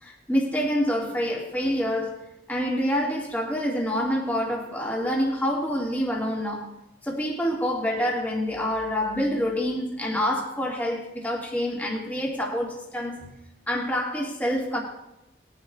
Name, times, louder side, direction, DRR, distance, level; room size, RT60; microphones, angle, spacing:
voice 1, 0.0-2.2 2.5-6.7 7.0-13.3 13.7-14.8, equal, 10° left, -3 dB, 2.0 m, -27 dB
20.0 x 10.5 x 2.4 m, 0.91 s
head